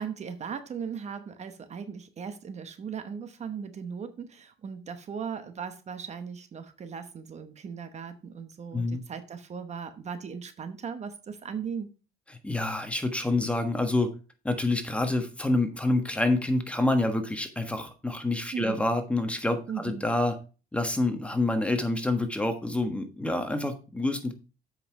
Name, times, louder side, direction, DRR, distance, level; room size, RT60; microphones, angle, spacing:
voice 1, 0.0-11.9 18.5-18.9 19.7-20.1, right 6 dB, 40° right, 1.0 m, -38 dB
voice 2, 8.7-9.0 12.4-14.1 14.4-20.4 20.7-24.3, left 2 dB, 5° left, 1.4 m, -27 dB
7.8 x 5.8 x 4.5 m
cardioid pair, 110°, 17 cm